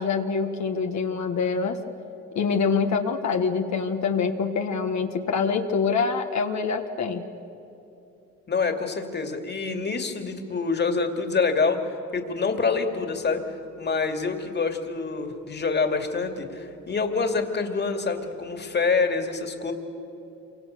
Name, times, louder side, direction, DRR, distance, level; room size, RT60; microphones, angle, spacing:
voice 1, 0.0-1.8 2.3-7.2, left 5 dB, 65° left, 4 dB, 1.6 m, -25 dB
voice 2, 8.5-13.4 13.8-19.7, left 4 dB, 35° left, 6 dB, 2.5 m, -26 dB
27.5 x 25.0 x 6.7 m, 2.9 s
cardioid pair, 90°, 30 cm